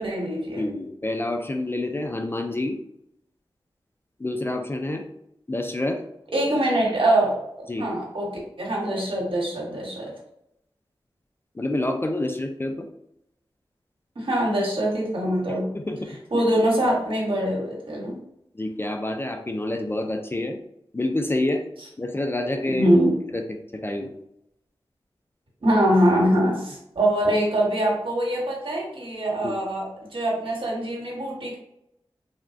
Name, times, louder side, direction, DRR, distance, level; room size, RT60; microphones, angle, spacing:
voice 1, 0.0-0.7 6.3-7.4 7.8-8.3 8.6-10.1 14.1-15.7 16.3-18.2 22.7-23.2 25.6-29.9 30.1-31.6, right 1 dB, 65° right, -3 dB, 1.2 m, -23 dB
voice 2, 0.6-2.8 4.2-5.1 5.5-6.0 7.7-7.9 11.5-12.9 15.5-16.0 16.3-16.4 18.5-20.6 20.9-21.6 22.0-24.1 29.4-29.5, left 1 dB, 25° left, 4 dB, 0.4 m, -28 dB
3.4 x 2.2 x 2.5 m, 0.78 s
wide cardioid pair, 55°, 9 cm